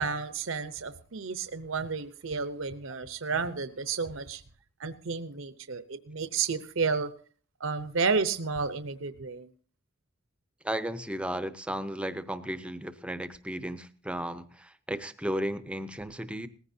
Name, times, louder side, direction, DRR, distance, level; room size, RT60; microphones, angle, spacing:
voice 1, 0.0-4.4 4.8-7.1 7.6-9.5, right 5 dB, 70° right, 11 dB, 0.8 m, -31 dB
voice 2, 10.6-16.5, equal, 5° right, 11 dB, 0.6 m, -34 dB
19.0 x 15.5 x 2.7 m, 0.43 s
head